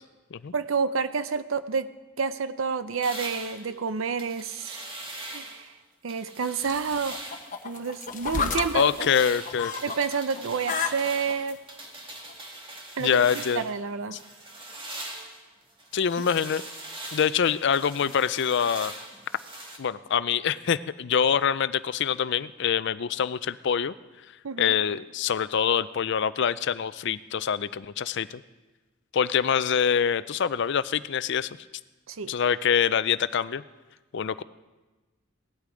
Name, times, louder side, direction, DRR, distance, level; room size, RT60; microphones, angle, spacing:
voice 1, 0.5-1.9 2.2-4.8 5.3-5.7 6.0-7.2 7.6-9.1 9.8-11.6 13.0-14.2 24.4-24.8 32.1-32.3, right 5 dB, 75° right, 13 dB, 0.6 m, -29 dB
sound 1, 3.0-5.7 6.1-7.5 7.9-13.8 14.2-19.8, right 1 dB, 25° right, 1.8 m, -41 dB
sound 2, 6.6-10.0 10.3-11.5 12.3-12.4, left 5 dB, 40° left, 0.9 m, -32 dB
voice 2, 8.7-9.7 13.0-13.7 15.9-16.6 17.1-18.9 19.8-23.9 24.6-28.4 29.1-31.5 32.3-33.6 34.1-34.4, left 7 dB, 60° left, 16 dB, 0.4 m, -25 dB
17.5 x 11.5 x 5.0 m, 1.2 s
head